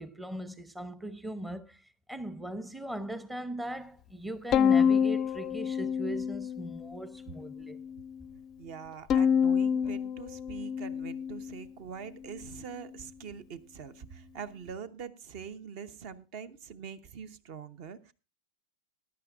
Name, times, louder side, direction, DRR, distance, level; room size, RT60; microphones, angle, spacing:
voice 1, 0.0-7.8, right 1 dB, 5° right, 0.8 m, -39 dB
Bowed string instrument, 4.5-6.9 7.3-8.1 9.1-11.6, left 7 dB, 30° left, 0.5 m, -27 dB
voice 2, 8.6-18.1, right 7 dB, 45° right, 0.9 m, -44 dB
20.0 x 10.5 x 2.5 m
figure-of-eight pair, 90°, 0 cm